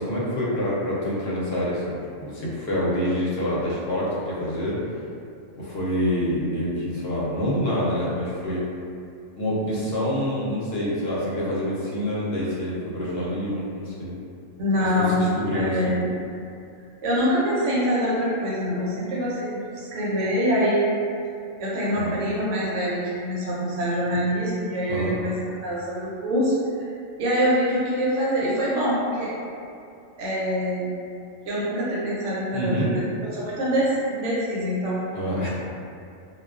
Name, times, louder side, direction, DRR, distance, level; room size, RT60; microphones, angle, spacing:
voice 1, 0.0-4.8 5.5-8.7 9.4-14.1 14.8-16.0 21.9-22.1 24.9-25.1 32.5-32.9 35.1-35.5, equal, 65° left, -7 dB, 0.8 m, -26 dB
voice 2, 14.6-16.1 17.0-20.9 21.6-26.9 27.2-29.3 30.2-30.9 31.4-35.0, equal, 80° right, -7 dB, 1.0 m, -25 dB
2.3 x 2.3 x 2.3 m, 2.5 s
omnidirectional pair, 1.2 m